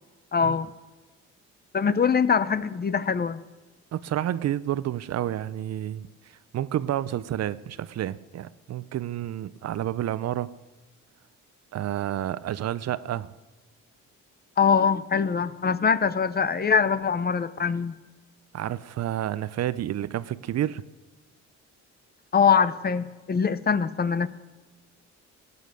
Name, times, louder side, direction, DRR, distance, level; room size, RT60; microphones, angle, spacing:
voice 1, 0.3-0.7 1.7-3.4 14.6-17.9 22.3-24.3, left 6 dB, 30° left, 0.7 m, -23 dB
voice 2, 3.9-6.1 6.5-10.6 11.7-13.3 18.5-20.8, right 12 dB, 60° right, 0.6 m, -30 dB
16.5 x 9.7 x 6.7 m
cardioid pair, 90°, 30 cm